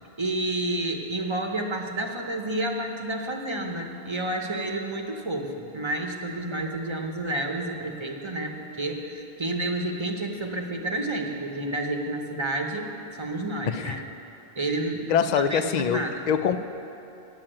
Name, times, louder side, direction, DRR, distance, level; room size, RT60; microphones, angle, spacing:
voice 1, 0.2-12.9 13.2-14.0 14.6-16.2, right 2 dB, 30° right, 2 dB, 0.8 m, -30 dB
voice 2, 13.7-14.0 15.1-16.6, left 7 dB, 55° left, 11 dB, 0.5 m, -24 dB
9.2 x 7.3 x 8.8 m, 2.9 s
omnidirectional pair, 1.0 m